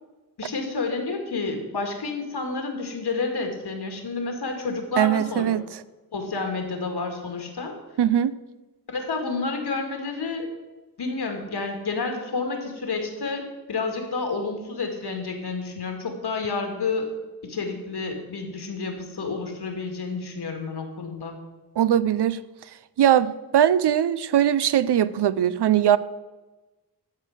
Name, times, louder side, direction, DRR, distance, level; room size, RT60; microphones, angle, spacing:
voice 1, 0.4-5.5 6.1-7.7 8.9-10.5 11.0-17.1 17.4-21.4, left 4 dB, 75° left, 2.1 m, -30 dB
voice 2, 5.0-5.7 8.0-8.3 21.8-22.4 23.0-26.0, right 10 dB, 85° right, 0.6 m, -20 dB
13.0 x 4.6 x 7.8 m
wide cardioid pair, 90°, 39 cm